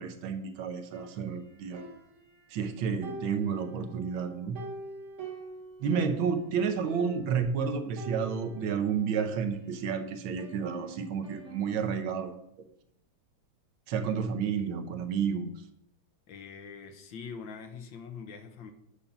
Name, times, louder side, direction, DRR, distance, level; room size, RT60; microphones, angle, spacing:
voice 1, 0.0-1.8 2.5-4.6 5.8-12.3 13.9-15.5, right 6 dB, 80° right, 7 dB, 1.7 m, -31 dB
sound 1, 0.9-2.7 3.0-6.3 6.6-6.7 6.8-7.4 8.0-10.0 10.4-12.0, right 2 dB, 45° right, 1.3 m, -46 dB
voice 2, 16.3-18.7, left 6 dB, 70° left, 7 dB, 1.6 m, -43 dB
8.5 x 5.3 x 5.7 m, 0.77 s
omnidirectional pair, 2.2 m